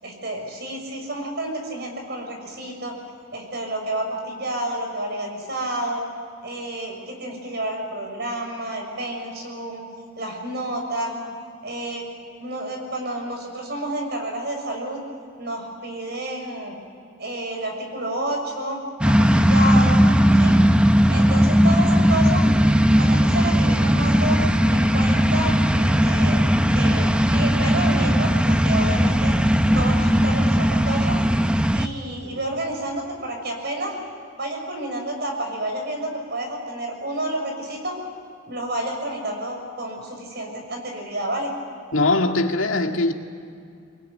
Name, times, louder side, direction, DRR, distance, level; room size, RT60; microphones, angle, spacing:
voice 1, 0.0-3.0 3.3-6.0 6.4-9.8 10.2-11.2 11.6-12.1 12.4-15.0 15.4-16.7 17.2-20.0 20.3-20.6 21.1-22.5 23.0-24.4 24.7-29.4 29.7-31.2 31.7-34.0 34.4-38.0 38.4-41.5, right 1 dB, 55° right, 6.6 m, -30 dB
sound 1, 19.0-31.9, equal, 5° right, 0.7 m, -18 dB
voice 2, 41.9-43.1, left 2 dB, 85° left, 2.2 m, -21 dB
24.5 x 21.5 x 9.6 m
head